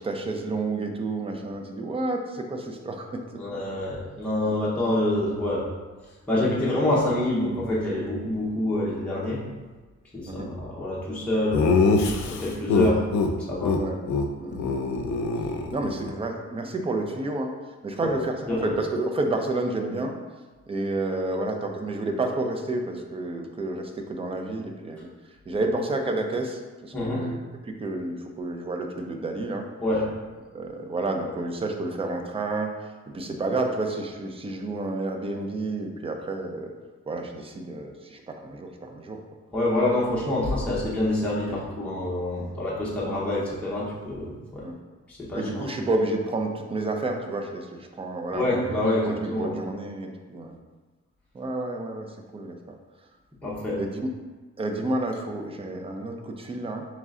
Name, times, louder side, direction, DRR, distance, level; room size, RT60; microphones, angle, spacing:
voice 1, 0.0-3.4 4.4-4.5 6.3-6.4 10.3-10.5 13.7-14.0 14.4-15.0 15.7-17.5 17.8-20.2 20.7-29.7 30.5-32.7 33.1-36.7 37.1-39.2 41.5-41.6 42.4-42.5 44.6-44.8 45.3-48.5 49.0-50.6 51.3-52.8 53.8-54.1 54.6-56.9, right 2 dB, 20° right, 4 dB, 0.3 m, -30 dB
voice 2, 3.4-5.6 6.3-9.4 10.1-11.7 12.2-13.0 13.5-13.8 18.0-18.1 18.5-18.7 26.9-27.3 29.8-30.0 39.5-44.6 45.1-45.7 48.3-49.6 53.4-53.8, left 1 dB, 5° left, -7 dB, 0.7 m, -26 dB
Laughter, 11.5-13.3 13.6-13.8 14.1-14.3 14.5-16.1, left 4 dB, 75° left, 0.5 m, -23 dB
3.7 x 3.2 x 3.6 m, 1.3 s
wide cardioid pair, 165°, 29 cm